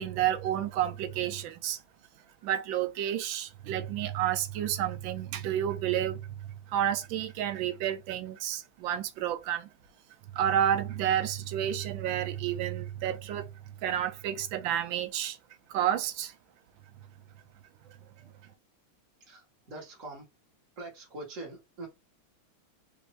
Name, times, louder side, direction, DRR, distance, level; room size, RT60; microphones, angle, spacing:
voice 1, 0.0-1.8 2.4-6.2 6.7-9.7 10.3-13.5 13.8-15.4 15.7-16.3, right 10 dB, 75° right, 1.3 m, -30 dB
voice 2, 17.8-18.4 19.3-20.2 20.8-21.9, right 2 dB, 40° right, 2.1 m, -44 dB
5.2 x 2.9 x 3.2 m
omnidirectional pair, 2.3 m